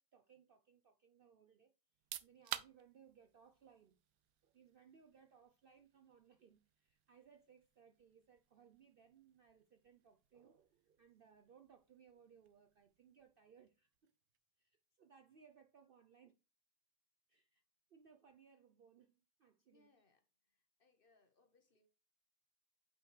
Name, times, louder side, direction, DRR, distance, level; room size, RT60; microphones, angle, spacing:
voice 1, 0.0-1.7 2.2-4.0 4.4-14.1 14.6-16.4 17.3-17.6 17.9-19.9, right 7 dB, 90° right, 0.4 m, -66 dB
sound 1, 1.9-14.5, right 12 dB, 70° right, 1.0 m, -55 dB
voice 2, 19.7-21.9, left 3 dB, 40° left, 1.0 m, -74 dB
8.0 x 5.6 x 3.2 m
omnidirectional pair, 1.7 m